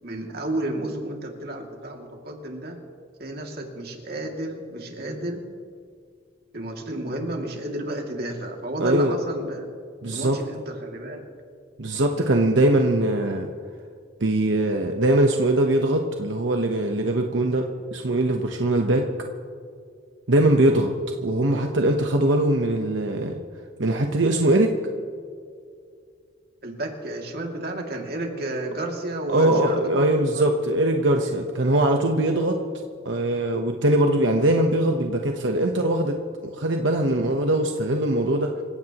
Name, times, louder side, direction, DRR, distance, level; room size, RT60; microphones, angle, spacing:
voice 1, 0.0-2.8 3.2-5.4 6.5-9.7 10.1-11.3 26.6-30.5, right 1 dB, 55° right, 1 dB, 2.5 m, -31 dB
voice 2, 8.8-9.2 10.0-10.4 11.8-13.5 14.2-19.1 20.3-20.9 21.2-23.4 23.8-24.8 29.3-32.6 33.0-36.2 36.4-38.5, right 1 dB, 85° right, 3 dB, 1.1 m, -21 dB
27.0 x 16.0 x 3.0 m, 2.3 s
head